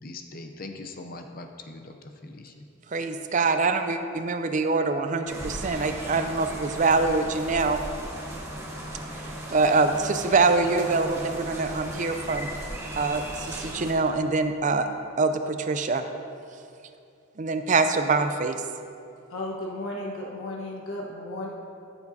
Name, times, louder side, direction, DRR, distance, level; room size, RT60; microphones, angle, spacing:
voice 1, 0.0-1.9 2.2-2.5, left 2 dB, 45° left, 5 dB, 0.6 m, -41 dB
voice 2, 2.9-7.8 9.5-12.5 13.0-14.8 15.2-16.0 17.4-18.6, right 3 dB, 35° right, 8 dB, 0.4 m, -24 dB
sound 1, 5.3-13.9, right 1 dB, 15° right, 1.0 m, -37 dB
voice 3, 19.3-21.5, left 1 dB, 80° left, -3 dB, 1.2 m, -34 dB
13.5 x 7.1 x 2.7 m, 2.6 s
head